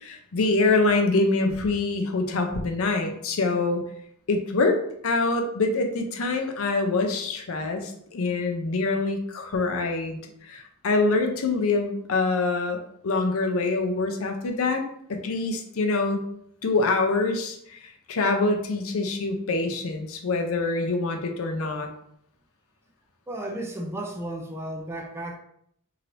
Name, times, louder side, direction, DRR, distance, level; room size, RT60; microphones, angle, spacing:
voice 1, 0.0-3.8 4.3-10.2 10.5-14.8 15.1-16.2 16.6-17.8 18.1-21.9, left 3 dB, 70° left, 4 dB, 0.5 m, -25 dB
voice 2, 23.3-25.4, right 1 dB, 10° right, 2 dB, 0.3 m, -33 dB
3.2 x 2.8 x 2.5 m, 0.71 s
head